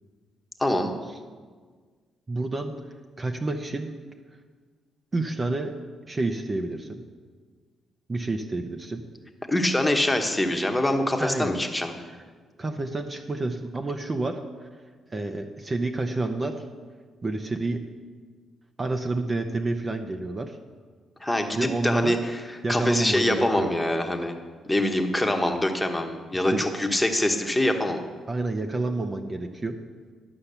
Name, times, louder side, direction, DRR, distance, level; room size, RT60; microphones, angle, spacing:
voice 1, 0.6-0.9 9.5-11.9 21.2-22.4 22.7-24.3 24.7-28.0, left 1 dB, 10° left, 4 dB, 1.1 m, -24 dB
voice 2, 2.3-2.7 3.2-3.9 5.1-5.7 6.1-7.0 8.1-9.0 11.2-11.6 12.6-14.7 15.1-16.6 17.2-17.8 18.8-20.6 21.6-22.2 22.6-23.8 26.3-26.7 28.3-29.8, right 2 dB, 30° right, 5 dB, 0.7 m, -29 dB
11.5 x 5.8 x 6.8 m, 1.5 s
cardioid pair, 90°, 0 cm